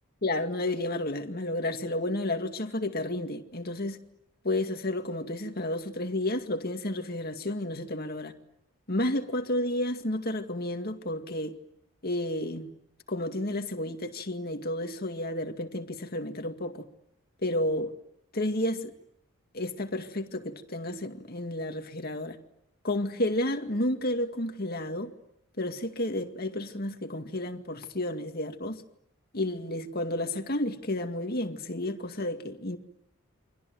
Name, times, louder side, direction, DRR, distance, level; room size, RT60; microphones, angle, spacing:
voice 1, 0.2-4.0 4.4-8.3 8.9-11.5 12.0-12.7 13.1-16.9 17.4-17.9 18.3-18.9 19.5-22.4 22.8-25.1 25.6-28.8 29.3-32.8, left 1 dB, 45° left, 2.1 m, -31 dB
29.5 x 24.5 x 7.9 m
head